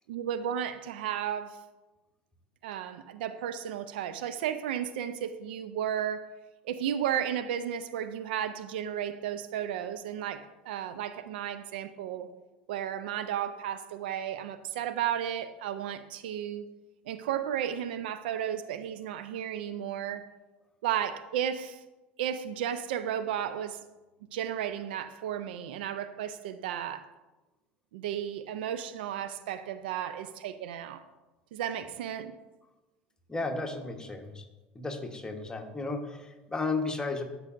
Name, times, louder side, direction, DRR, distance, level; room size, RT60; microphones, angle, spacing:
voice 1, 0.1-1.6 2.6-6.3 6.6-12.3 12.7-16.7 17.1-20.3 20.8-21.8 22.2-23.8 24.3-27.1 27.9-31.0 31.5-32.3, right 9 dB, 70° right, 0.4 m, -33 dB
voice 2, 33.3-34.5 34.7-37.2, left 3 dB, 15° left, 1.1 m, -34 dB
12.5 x 4.7 x 2.5 m
hypercardioid pair, 75°, 6 cm